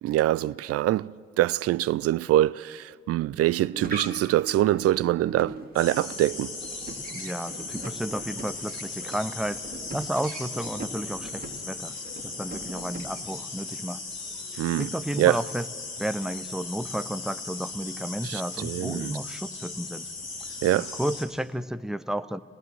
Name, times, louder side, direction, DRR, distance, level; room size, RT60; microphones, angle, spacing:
voice 1, 0.0-6.5 14.6-14.9 15.2-15.4 18.2-19.2 20.6-20.9, right 14 dB, 50° right, 0.5 m, -24 dB
sound 1, 3.4-13.5, right 3 dB, 30° right, 2.8 m, -41 dB
sound 2, 5.7-21.2, left 3 dB, 55° left, 4.0 m, -38 dB
voice 2, 7.1-9.6 9.9-12.0 12.2-14.0 14.5-15.7 16.0-20.1 20.7-22.4, right 1 dB, ahead, 0.7 m, -32 dB
26.0 x 19.0 x 7.8 m
figure-of-eight pair, 40°, 31 cm